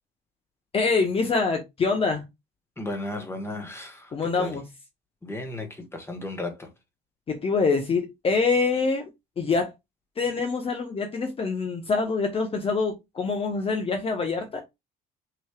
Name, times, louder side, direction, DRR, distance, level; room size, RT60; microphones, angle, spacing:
voice 1, 0.7-2.3 4.1-4.7 7.3-9.1 9.4-9.7 10.2-14.6, left 4 dB, 35° left, 1.0 m, -25 dB
voice 2, 2.8-4.6 5.2-6.7, left 1 dB, 15° left, 1.4 m, -34 dB
6.1 x 3.2 x 2.4 m
cardioid pair, 110°, 17 cm